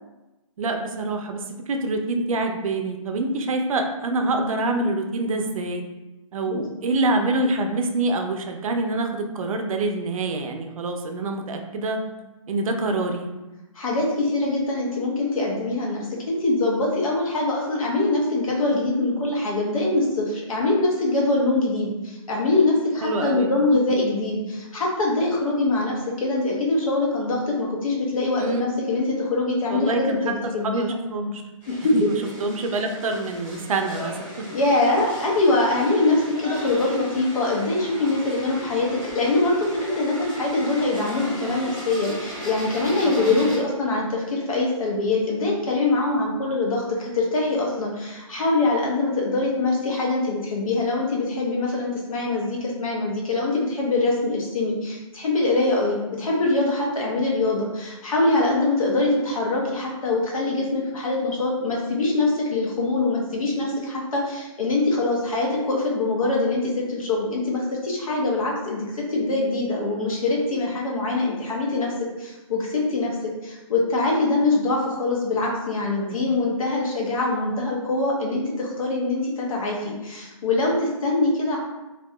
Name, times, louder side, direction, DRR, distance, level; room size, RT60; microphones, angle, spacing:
voice 1, 0.6-5.8 6.3-12.0 12.5-13.3 23.0-23.6 28.4-28.7 29.7-30.2 30.6-31.4 31.9-32.1 32.4-34.3 43.0-43.5, right 2 dB, 75° right, 4 dB, 0.4 m, -26 dB
voice 2, 13.8-31.0 31.7-32.1 34.5-38.9 39.1-71.9 72.2-81.6, left 2 dB, 80° left, -2 dB, 0.8 m, -23 dB
sound 1, 31.6-43.6, equal, 10° left, 1.3 m, -37 dB
2.7 x 2.3 x 2.2 m, 1.1 s
hypercardioid pair, 170°, 17 cm